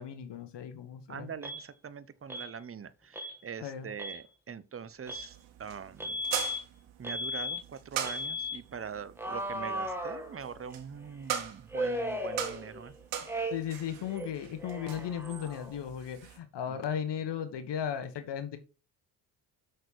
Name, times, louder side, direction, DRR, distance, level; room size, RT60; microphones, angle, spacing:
voice 1, 0.0-1.3 3.6-3.9 13.5-18.6, left 8 dB, 55° left, 1.5 m, -36 dB
voice 2, 1.1-6.2 7.0-12.9 16.7-16.8, right 7 dB, 25° right, 0.9 m, -43 dB
Alarm, 1.4-1.6 2.3-2.5 3.1-3.4 3.9-4.2 5.1-5.3 6.0-6.6 7.0-7.6 8.0-8.6 9.2-10.7 11.7-12.9 13.2-13.8 14.1-15.8, equal, 5° right, 2.3 m, -36 dB
sound 1, 5.1-16.4, right 9 dB, 70° right, 1.9 m, -42 dB
6.5 x 6.4 x 4.6 m
supercardioid pair, 65°, 50 cm